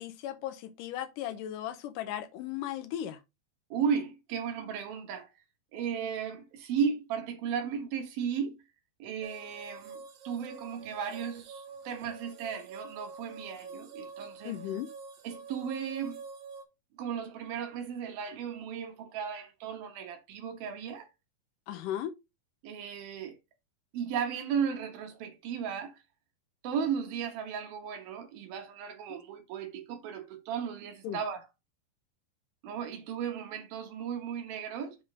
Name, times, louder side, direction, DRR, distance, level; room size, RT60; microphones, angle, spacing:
voice 1, 0.0-3.2 14.4-14.9 21.7-22.1 31.0-31.2, left 11 dB, 75° left, 2.0 m, -36 dB
voice 2, 3.7-5.3 5.7-8.6 9.0-14.6 15.2-16.2 16.9-21.1 22.6-23.4 23.9-26.0 26.6-31.5 32.6-35.0, right 7 dB, 75° right, 3.2 m, -35 dB
sound 1, 9.2-16.6, right 4 dB, 60° right, 2.5 m, -47 dB
7.8 x 3.7 x 4.9 m
omnidirectional pair, 4.3 m